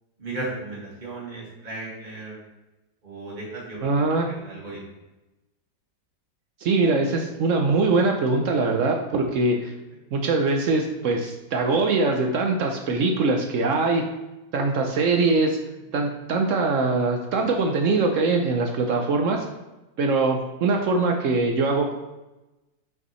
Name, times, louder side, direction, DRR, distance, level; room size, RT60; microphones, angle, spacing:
voice 1, 0.2-2.4 3.0-3.9 4.3-4.8, right 2 dB, 25° right, -6 dB, 1.9 m, -35 dB
voice 2, 3.8-4.3 6.6-9.7 10.1-14.1 14.5-15.6 15.9-19.4 20.0-21.9, right 3 dB, 75° right, 3 dB, 0.7 m, -22 dB
5.8 x 5.4 x 3.1 m, 1.0 s
omnidirectional pair, 2.0 m